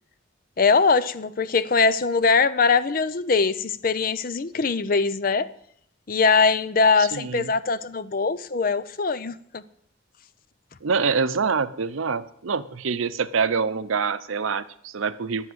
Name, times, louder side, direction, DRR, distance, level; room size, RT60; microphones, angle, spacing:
voice 1, 0.6-5.5 6.1-9.6, left 4 dB, 45° left, 0.5 m, -22 dB
voice 2, 7.0-7.5 10.8-15.5, right 5 dB, 80° right, 0.6 m, -25 dB
10.5 x 7.7 x 7.9 m
head